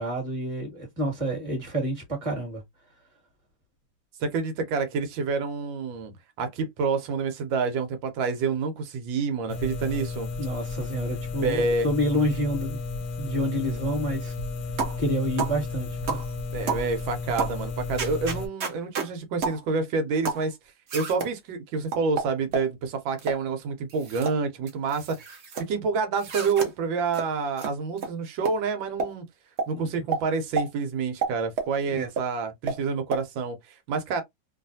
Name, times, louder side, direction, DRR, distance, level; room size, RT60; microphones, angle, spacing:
voice 1, 0.0-2.6 10.4-12.8 13.2-14.3 15.0-16.2 29.7-29.8 31.9-32.1, equal, 20° right, 1.4 m, -28 dB
voice 2, 4.2-10.3 11.4-11.9 13.7-13.8 16.5-20.6 20.9-25.3 25.7-29.2 29.7-34.2, right 4 dB, 85° right, 1.5 m, -28 dB
sound 1, 9.5-18.5, left 3 dB, 65° left, 1.0 m, -33 dB
sound 2, 14.8-15.0 15.4-15.6 16.1-16.3 16.7-16.9 17.4-17.6 18.0-19.1 19.4-19.6 20.2-20.5 20.9-21.3 21.9-22.7 23.2-23.4 23.9-24.4 24.7-25.6 26.2-26.7 27.1-27.3 27.6-27.7 28.0-28.1 28.4-28.6 29.0-29.1 29.6-29.7 30.1-30.2 30.6-30.7 31.2-31.7 32.2-32.3 32.7-32.8 33.1-33.2, right 4 dB, 50° right, 0.8 m, -30 dB
3.2 x 2.4 x 2.6 m
omnidirectional pair, 2.0 m